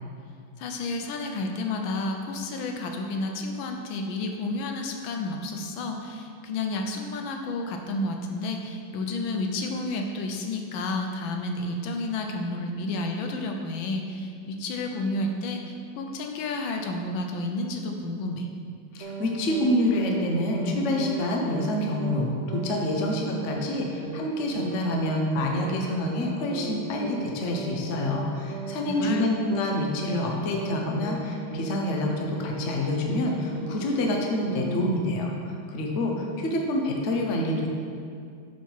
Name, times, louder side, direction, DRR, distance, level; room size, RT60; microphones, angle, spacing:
voice 1, 0.6-18.5 28.8-29.3, left 2 dB, 75° left, 3 dB, 1.4 m, -31 dB
voice 2, 18.9-37.7, left 1 dB, 55° left, 1 dB, 0.8 m, -27 dB
sound 1, 19.0-19.3 19.5-19.8 20.0-20.3 20.5-20.8 21.0-21.3 21.5-21.8 22.0-22.3 22.5-22.8 23.0-23.3 23.5-23.8 24.0-24.3 24.5-24.8 25.0-25.3 25.5-25.8 26.0-26.3 26.5-26.8 27.0-27.3 27.5-27.8 28.0-28.3 28.5-28.8 29.0-29.3 29.5-29.8 30.0-30.3 30.5-30.8 31.0-31.3 31.5-32.3 32.5-32.8 33.0-33.3 33.5-33.8 34.0-34.3 34.5-34.8, right 5 dB, 80° right, 0.6 m, -37 dB
5.9 x 4.5 x 5.4 m, 2.3 s
omnidirectional pair, 2.2 m